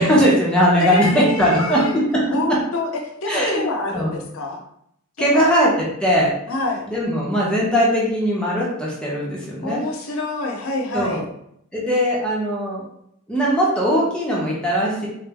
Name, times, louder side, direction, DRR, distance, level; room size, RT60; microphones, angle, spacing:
voice 1, 0.0-2.3 3.3-3.6 3.9-4.1 5.2-6.3 6.9-9.8 10.9-11.2 11.7-12.8 13.3-15.1, equal, 5° left, -5 dB, 0.8 m, -19 dB
voice 2, 0.8-2.0 2.3-4.6 5.2-5.5 6.5-6.9 9.6-11.2, left 2 dB, 75° left, 2 dB, 0.7 m, -27 dB
3.8 x 2.5 x 3.4 m, 0.73 s
head